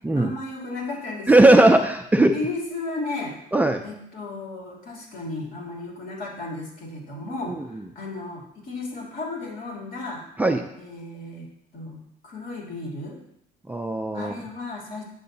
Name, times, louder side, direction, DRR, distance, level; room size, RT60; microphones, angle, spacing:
voice 1, 0.1-1.6 2.2-3.3 3.8-10.2 10.7-11.5 11.7-13.2 14.1-15.0, left 2 dB, 55° left, -2 dB, 2.9 m, -34 dB
voice 2, 1.3-2.3 3.5-3.8 7.5-7.6 10.4-10.6 13.7-14.3, right 2 dB, 10° right, 5 dB, 0.4 m, -18 dB
8.4 x 7.8 x 2.8 m, 0.77 s
cardioid pair, 110°, 17 cm